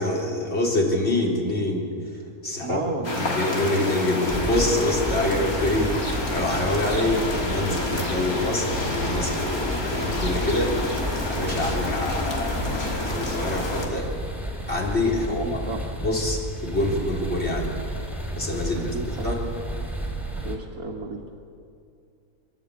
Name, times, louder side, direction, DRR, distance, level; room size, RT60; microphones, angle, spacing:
voice 1, 0.0-2.8 3.1-6.0 6.3-10.8 11.2-14.1 14.7-15.7 16.0-17.7 18.3-19.4, left 1 dB, 45° left, -1 dB, 4.1 m, -26 dB
voice 2, 2.6-3.3 15.4-15.8 18.9-19.3 20.4-21.2, right 3 dB, 75° right, -3 dB, 2.1 m, -32 dB
sound 1, 3.0-13.9, left 2 dB, 70° left, 3.4 m, -29 dB
sound 2, 4.3-20.6, equal, ahead, 3.4 m, -32 dB
28.5 x 12.0 x 8.6 m, 2.4 s
omnidirectional pair, 1.6 m